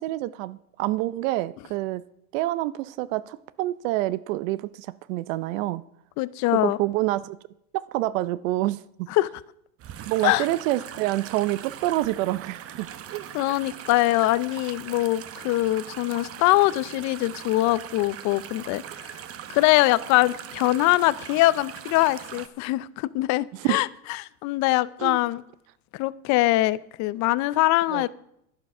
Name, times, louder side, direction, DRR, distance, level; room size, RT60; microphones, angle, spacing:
voice 1, 0.0-2.0 2.3-5.8 6.5-7.4 7.7-9.1 10.1-13.3 23.5-23.8 25.0-25.2 27.9-28.1, right 16 dB, 60° right, 0.6 m, -27 dB
voice 2, 6.2-6.8 9.1-9.3 10.2-10.4 13.3-19.2 19.5-25.4 25.9-28.1, left 18 dB, 40° left, 0.5 m, -23 dB
sound 1, 9.8-22.5, right 10 dB, 30° right, 0.9 m, -40 dB
11.0 x 10.5 x 5.4 m
supercardioid pair, 120°, 46 cm